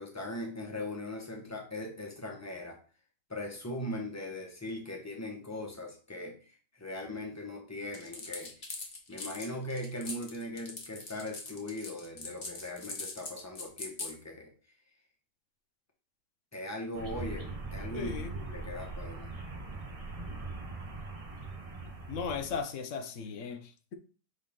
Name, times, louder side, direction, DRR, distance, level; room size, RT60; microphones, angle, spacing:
voice 1, 0.0-2.8 3.3-8.5 9.1-14.5 16.5-19.3, left 1 dB, 10° left, 1.1 m, -40 dB
sound 1, 7.9-14.1, left 3 dB, 30° left, 1.1 m, -41 dB
sound 2, 16.9-22.6, right 3 dB, 30° right, 0.7 m, -41 dB
voice 2, 17.9-18.3 22.1-23.9, left 5 dB, 55° left, 0.9 m, -37 dB
6.6 x 3.9 x 3.7 m
omnidirectional pair, 1.9 m